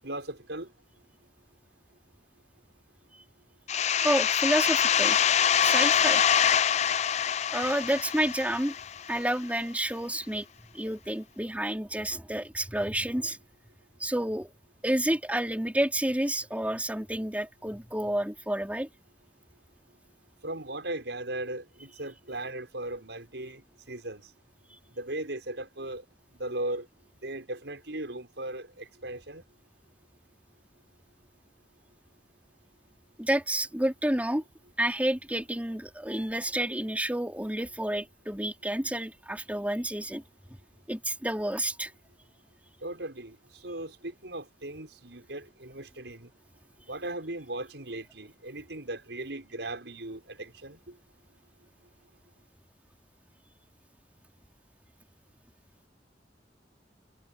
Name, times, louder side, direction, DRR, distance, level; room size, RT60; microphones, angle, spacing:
voice 1, 0.0-0.7 20.4-23.6 23.9-24.3 24.9-26.0 26.3-26.9 27.2-29.4 42.8-43.4 43.6-46.3 46.9-51.0, right 1 dB, 80° right, 5.5 m, -37 dB
sound 1, 3.7-9.2, left 8 dB, 40° left, 0.4 m, -25 dB
voice 2, 4.0-5.2 5.6-6.2 7.5-8.7 9.1-10.5 10.7-13.4 14.0-14.5 14.8-18.9 33.2-34.4 34.8-40.2 40.9-41.9, right 1 dB, 10° right, 4.2 m, -29 dB
head